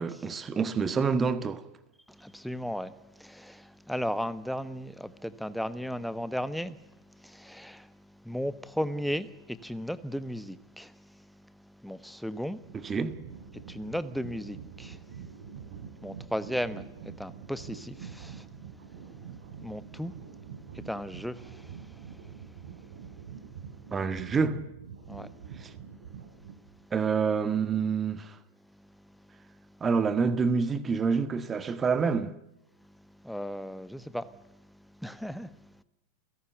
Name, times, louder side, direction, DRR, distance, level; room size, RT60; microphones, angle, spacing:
voice 1, 0.0-1.6 12.7-13.2 23.9-24.6 26.9-28.3 29.8-32.3, right 5 dB, 20° right, 1.8 m, -27 dB
voice 2, 2.2-6.8 7.2-7.9 8.2-10.9 11.8-12.6 13.7-15.0 16.0-18.5 19.6-20.1 20.7-22.2 25.1-25.3 33.2-34.3 35.0-35.5, equal, ahead, 1.3 m, -35 dB
sound 1, 12.6-26.8, right 7 dB, 55° right, 3.4 m, -46 dB
29.5 x 17.5 x 9.4 m
figure-of-eight pair, 90°, 0 cm